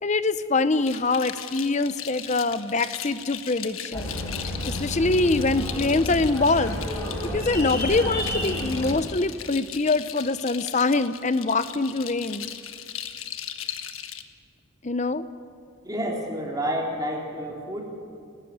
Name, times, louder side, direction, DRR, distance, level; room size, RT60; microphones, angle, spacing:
voice 1, 0.0-4.1 4.7-6.8 7.3-12.5 14.8-15.2, left 3 dB, 35° left, 13 dB, 0.7 m, -24 dB
sound 1, 0.8-14.2, left 10 dB, 90° left, 1.4 m, -38 dB
sound 2, 3.9-8.9, equal, 15° left, 5.1 m, -30 dB
voice 2, 15.8-17.8, equal, 20° right, -2 dB, 3.9 m, -29 dB
29.5 x 13.5 x 9.6 m, 2.4 s
head